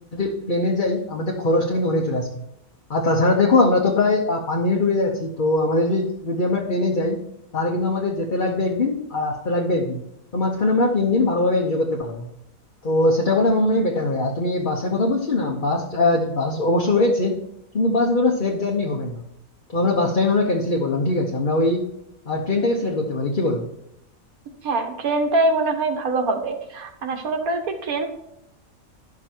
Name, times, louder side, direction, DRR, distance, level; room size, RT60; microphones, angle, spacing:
voice 1, 0.1-2.4 2.9-7.2 7.5-10.0 10.3-12.3 12.8-17.4 17.7-19.2 19.7-21.8 22.3-23.6, left 2 dB, 40° left, -1 dB, 1.0 m, -21 dB
voice 2, 24.6-28.1, right 2 dB, 85° right, 5 dB, 1.6 m, -23 dB
10.5 x 6.0 x 4.5 m, 0.81 s
omnidirectional pair, 1.5 m